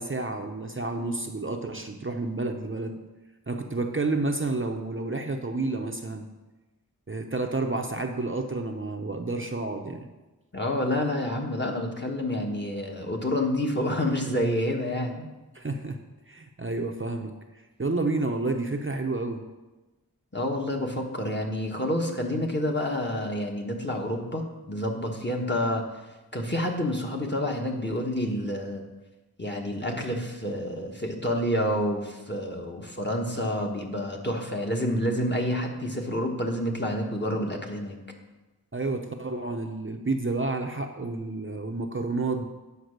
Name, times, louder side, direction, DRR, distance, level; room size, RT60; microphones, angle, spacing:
voice 1, 0.0-3.0 3.5-6.3 7.1-10.1 15.5-16.0 16.3-17.4 17.8-19.4 38.7-42.4, right 3 dB, 35° right, 4 dB, 0.7 m, -30 dB
voice 2, 10.5-15.2 20.3-25.8 26.3-28.8 29.4-38.0, left 1 dB, 30° left, 1 dB, 1.4 m, -28 dB
9.5 x 5.4 x 6.6 m, 1.1 s
wide cardioid pair, 55°, 37 cm